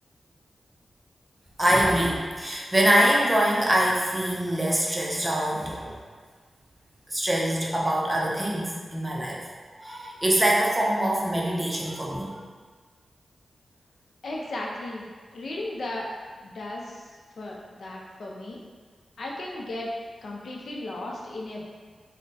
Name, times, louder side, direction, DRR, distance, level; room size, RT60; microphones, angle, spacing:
voice 1, 1.6-6.0 7.1-9.4 9.8-12.4, right 1 dB, 20° right, -3 dB, 0.7 m, -24 dB
voice 2, 14.2-15.1 15.3-16.1 16.4-18.6 19.2-19.9 20.2-21.7, left 2 dB, 75° left, -2 dB, 0.5 m, -35 dB
3.4 x 2.1 x 4.0 m, 1.5 s
wide cardioid pair, 80°, 0 cm